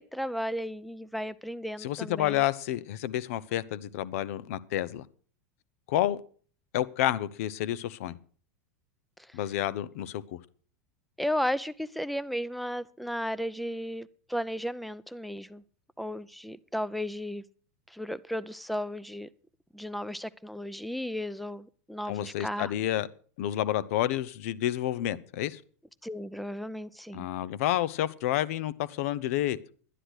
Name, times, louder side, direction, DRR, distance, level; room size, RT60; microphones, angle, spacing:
voice 1, 0.0-2.4 11.2-15.6 16.0-17.4 17.9-19.3 19.7-22.7 26.0-27.3, equal, ahead, 0.5 m, -34 dB
voice 2, 1.8-5.0 5.9-6.2 6.7-8.2 9.3-10.4 22.1-23.1 23.4-25.6 27.1-29.6, left 13 dB, 70° left, 0.7 m, -29 dB
12.0 x 10.0 x 6.2 m
hypercardioid pair, 110°, 8 cm